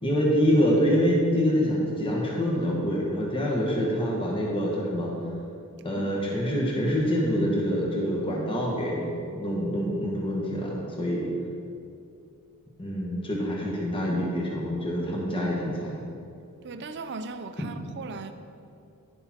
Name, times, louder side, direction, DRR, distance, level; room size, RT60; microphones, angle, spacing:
voice 1, 0.0-5.1 5.8-11.3 12.8-16.0 17.6-17.7, equal, 25° left, -3 dB, 1.4 m, -26 dB
voice 2, 16.6-18.3, right 4 dB, 50° right, 9 dB, 0.5 m, -38 dB
10.5 x 6.8 x 4.3 m, 2.5 s
head